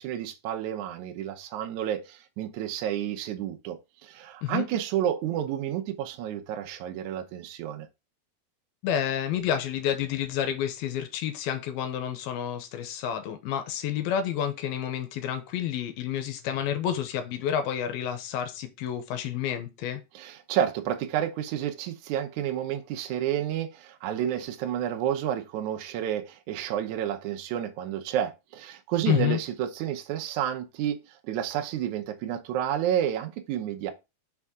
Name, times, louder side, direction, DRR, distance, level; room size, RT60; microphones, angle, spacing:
voice 1, 0.0-7.9 20.1-33.9, right 10 dB, 85° right, 1.6 m, -30 dB
voice 2, 8.8-20.0 29.1-29.4, left 10 dB, 80° left, 2.5 m, -29 dB
5.8 x 4.5 x 3.7 m
omnidirectional pair, 4.6 m